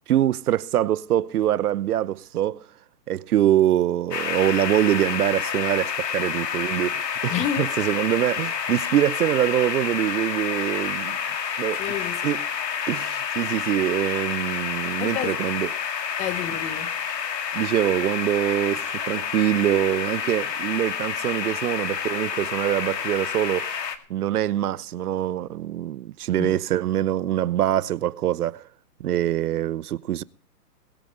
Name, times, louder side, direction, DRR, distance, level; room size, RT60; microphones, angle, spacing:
voice 1, 0.1-2.6 3.1-11.2 11.6-11.8 12.2-12.4 12.9-15.7 17.5-23.8 24.1-28.6 29.0-30.2, right 12 dB, 65° right, 0.8 m, -24 dB
sound 1, 4.1-24.0, left 7 dB, 80° left, 2.5 m, -29 dB
voice 2, 7.3-7.7 11.7-12.2 15.0-15.4 16.2-16.9 26.4-26.6, left 10 dB, 15° left, 0.8 m, -29 dB
21.5 x 8.5 x 5.0 m
hypercardioid pair, 150°, 49 cm